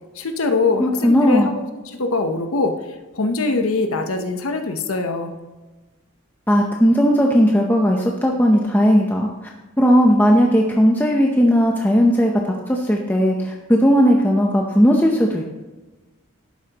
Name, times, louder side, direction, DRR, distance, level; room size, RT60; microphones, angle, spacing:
voice 1, 0.2-1.5 1.9-2.8 3.1-5.3, left 3 dB, 85° left, 6 dB, 0.9 m, -22 dB
voice 2, 0.8-1.5 6.5-9.3 9.8-12.3 12.7-15.4, equal, 10° left, 0 dB, 0.7 m, -16 dB
11.5 x 8.8 x 2.9 m, 1.2 s
head